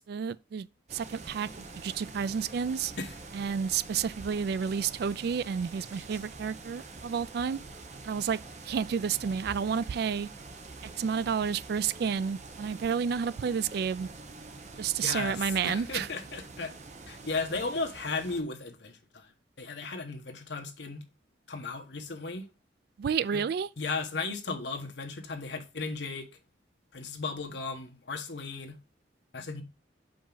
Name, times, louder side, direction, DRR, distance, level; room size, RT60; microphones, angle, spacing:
voice 1, 0.0-2.9 3.3-7.6 8.0-8.4 8.7-10.3 11.0-14.1 14.8-16.1 23.0-23.7, right 7 dB, 60° right, 0.3 m, -30 dB
sound 1, 0.9-18.4, right 3 dB, 40° right, 0.8 m, -46 dB
voice 2, 15.0-15.4 15.6-16.7 17.1-19.3 19.6-21.0 21.5-22.5 23.3-23.4 23.8-26.2 26.9-28.8 29.3-29.6, left 3 dB, 70° left, 1.1 m, -35 dB
5.8 x 5.1 x 3.9 m
head